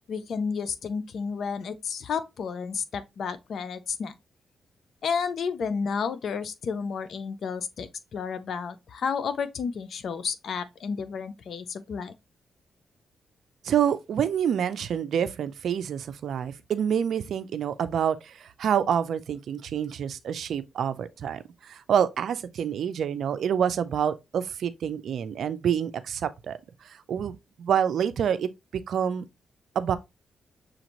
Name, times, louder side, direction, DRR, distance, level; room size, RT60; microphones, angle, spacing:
voice 1, 0.1-4.1 5.0-12.1, left 6 dB, 70° left, 0.5 m, -31 dB
voice 2, 13.6-26.6 26.8-29.2 29.8-30.0, right 8 dB, 75° right, 0.4 m, -27 dB
6.3 x 2.6 x 3.0 m
cardioid pair, 70°, 0 cm